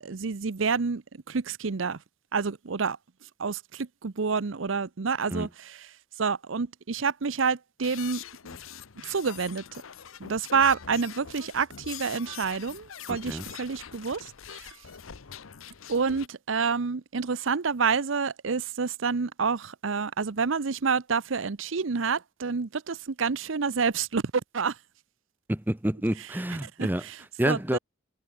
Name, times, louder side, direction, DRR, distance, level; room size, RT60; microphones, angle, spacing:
voice 1, 0.0-2.0 2.3-3.0 3.4-8.2 9.0-9.8 10.2-14.8 15.9-24.2 24.5-24.8 26.2-27.8, right 5 dB, 70° right, 0.7 m, -28 dB
sound 1, 7.8-16.3, left 8 dB, 90° left, 0.9 m, -44 dB
voice 2, 13.1-13.4 25.5-27.0 27.4-27.8, right 1 dB, 10° right, 0.7 m, -28 dB
head